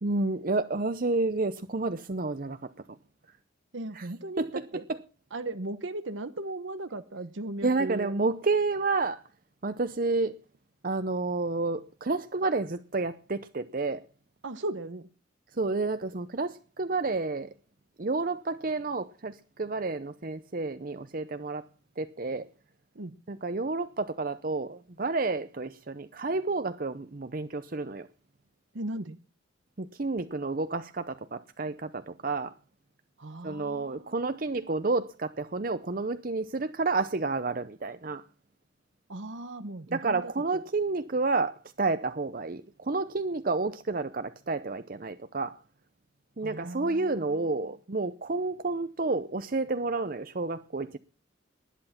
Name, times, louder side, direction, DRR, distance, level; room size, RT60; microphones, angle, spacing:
voice 1, 0.0-2.6 3.9-4.1 4.4-4.5 4.9-5.0 7.6-9.2 9.6-10.4 10.8-14.0 15.6-17.5 18.0-21.6 22.0-22.5 23.3-28.1 29.8-32.5 33.4-38.2 39.9-45.6 46.4-51.0, right 3 dB, 45° right, 0.7 m, -30 dB
voice 2, 3.7-4.8 5.3-8.1 14.4-15.1 22.9-23.1 28.7-29.2 33.2-35.0 39.1-40.6 46.4-47.7, right 2 dB, 75° right, 1.0 m, -38 dB
19.5 x 11.0 x 5.8 m
head